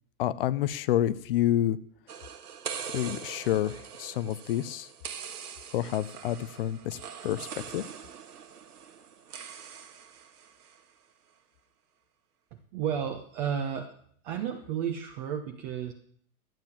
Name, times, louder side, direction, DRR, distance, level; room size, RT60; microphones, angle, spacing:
voice 1, 0.2-1.8 2.9-4.9 5.7-7.5 7.7-7.8, left 12 dB, 40° left, 17 dB, 0.6 m, -28 dB
sound 1, 2.1-10.8, right 7 dB, 90° right, 1.7 m, -43 dB
voice 2, 12.5-13.9 14.2-15.9, right 8 dB, 30° right, 5 dB, 1.1 m, -32 dB
12.0 x 9.0 x 7.3 m, 0.62 s
hypercardioid pair, 150°, 45 cm